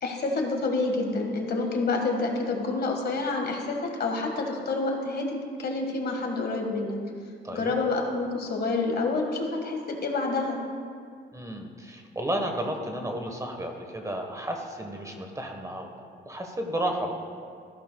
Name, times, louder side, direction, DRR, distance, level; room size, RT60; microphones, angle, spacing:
voice 1, 0.0-7.0 7.5-10.6, left 3 dB, 55° left, 2 dB, 1.6 m, -28 dB
voice 2, 7.4-7.8 11.3-17.1, right 1 dB, 15° right, 3 dB, 1.2 m, -33 dB
14.0 x 11.5 x 2.3 m, 2.2 s
cardioid pair, 90°, 20 cm